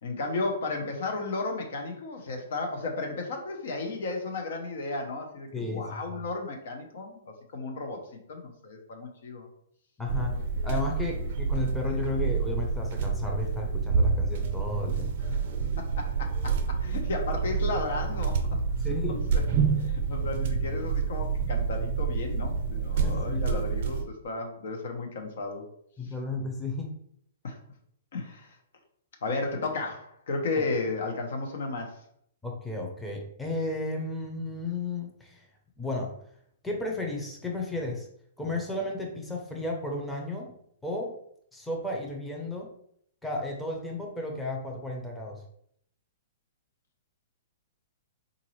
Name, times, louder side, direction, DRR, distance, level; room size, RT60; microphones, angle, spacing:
voice 1, 0.0-7.2 7.5-9.5 15.3-15.4 15.8-18.4 19.3-19.4 19.8-25.6 26.0-26.1 27.4-27.6 28.1-28.6 29.2-32.0, left 3 dB, 70° left, 3 dB, 0.8 m, -34 dB
voice 2, 5.5-6.0 10.0-15.1 18.8-19.2 23.0-23.5 26.0-26.9 32.4-35.5 35.8-36.1 36.6-38.1 38.4-40.5 40.8-41.1 41.5-42.7 43.2-45.4, left 2 dB, 5° left, -1 dB, 0.7 m, -33 dB
sound 1, 10.1-24.1, right 5 dB, 55° right, 0.5 m, -28 dB
3.9 x 2.6 x 3.0 m, 0.69 s
hypercardioid pair, 135°, 0 cm